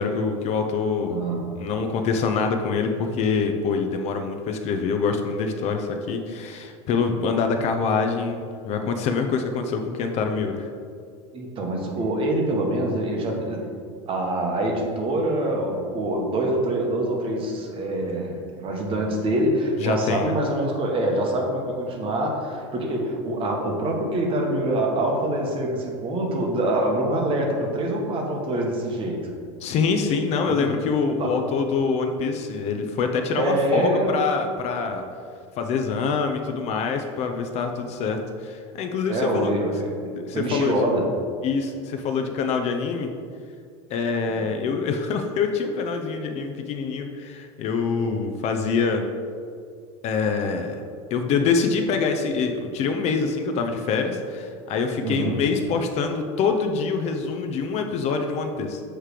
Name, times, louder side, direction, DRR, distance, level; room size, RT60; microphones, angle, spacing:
voice 1, 0.0-1.2 1.6-10.7 19.8-20.3 29.6-35.0 35.6-39.5 40.3-40.9 41.4-43.1 43.9-49.0 50.0-50.8 51.1-58.8, left 5 dB, 45° left, 5 dB, 0.6 m, -25 dB
voice 2, 1.1-1.4 11.3-13.7 14.1-29.3 30.5-30.7 31.2-31.4 33.3-34.2 39.1-41.1 55.0-55.4, right 1 dB, 35° right, 1 dB, 1.2 m, -25 dB
7.4 x 3.3 x 4.9 m, 2.2 s
supercardioid pair, 120°, 16 cm